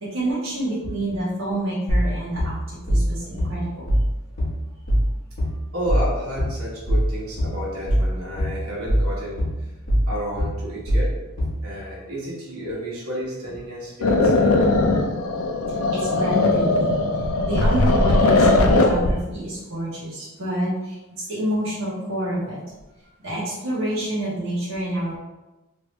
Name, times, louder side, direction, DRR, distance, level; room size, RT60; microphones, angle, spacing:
voice 1, 0.0-3.9 15.9-17.0 17.4-22.6 23.2-25.2, right 1 dB, 60° right, -8 dB, 0.9 m, -28 dB
sound 1, 1.9-11.7, equal, 40° left, 1.1 m, -22 dB
voice 2, 4.3-4.6 5.7-9.7 10.0-11.2 11.6-14.5, equal, 85° right, -5 dB, 1.1 m, -31 dB
sound 2, 14.0-19.2, left 2 dB, 80° left, 0.4 m, -19 dB
3.1 x 2.6 x 3.0 m, 1.0 s
head